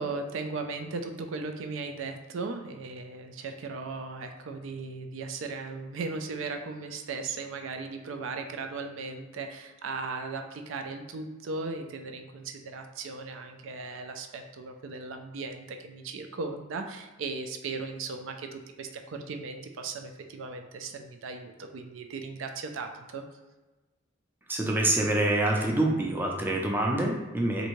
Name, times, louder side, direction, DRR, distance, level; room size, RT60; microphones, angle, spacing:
voice 1, 0.0-23.2, right 4 dB, 80° right, 5 dB, 0.4 m, -37 dB
voice 2, 24.5-27.7, right 1 dB, 10° right, -1 dB, 0.4 m, -26 dB
3.3 x 2.6 x 3.0 m, 1.1 s
head